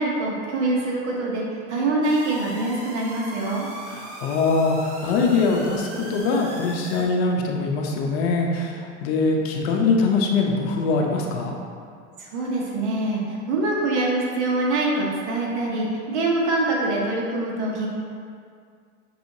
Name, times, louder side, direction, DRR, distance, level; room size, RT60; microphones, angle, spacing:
voice 1, 0.0-3.7 12.2-17.9, right 2 dB, 70° right, -3 dB, 1.0 m, -24 dB
sound 1, 2.0-7.0, right 1 dB, 40° right, 1.1 m, -39 dB
voice 2, 3.9-11.5, left 3 dB, 60° left, 1 dB, 0.7 m, -22 dB
6.1 x 2.8 x 2.7 m, 2.2 s
supercardioid pair, 145°, 36 cm